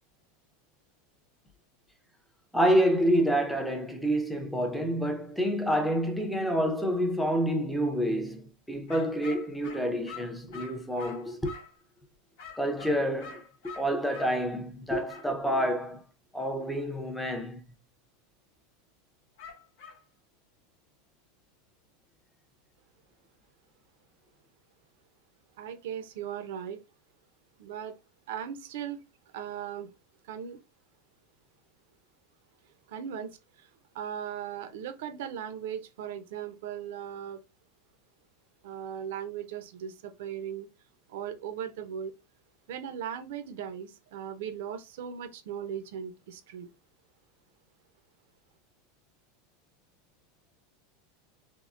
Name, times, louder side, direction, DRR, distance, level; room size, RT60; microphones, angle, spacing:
voice 1, 2.5-11.6 12.6-16.0 16.3-17.6, equal, ahead, 0.5 m, -28 dB
sound 1, 8.9-11.8 12.4-14.3 15.1-15.3 19.4-20.0, left 5 dB, 75° left, 1.0 m, -46 dB
voice 2, 25.6-26.8 27.6-28.0 28.3-29.0 29.3-29.9 30.3-30.6 32.9-33.7 33.9-37.4 38.6-40.7 41.1-42.1 42.7-46.7, right 9 dB, 75° right, 0.5 m, -38 dB
3.5 x 2.0 x 2.4 m
supercardioid pair, 140°, 0 cm